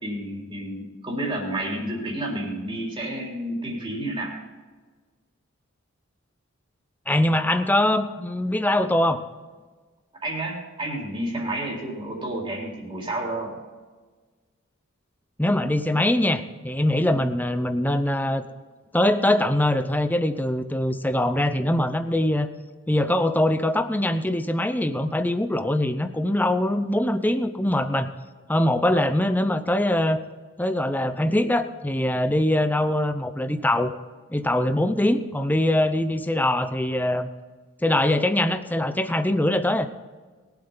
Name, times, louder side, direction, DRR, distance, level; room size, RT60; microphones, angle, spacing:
voice 1, 0.0-4.3 10.2-13.6 17.1-17.3, right 1 dB, 25° right, -3 dB, 3.8 m, -30 dB
voice 2, 7.1-9.2 15.4-18.4 18.9-22.5 22.9-28.1 28.5-30.2 30.6-33.9 34.3-37.3 37.8-39.9, left 1 dB, 10° left, 10 dB, 0.7 m, -23 dB
21.5 x 8.1 x 4.0 m, 1.3 s
head